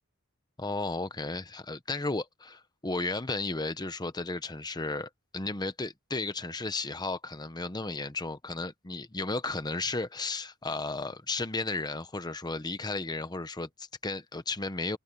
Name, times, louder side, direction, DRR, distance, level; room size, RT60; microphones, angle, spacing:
voice 1, 0.6-15.0, left 3 dB, 20° left, 1.0 m, -34 dB
head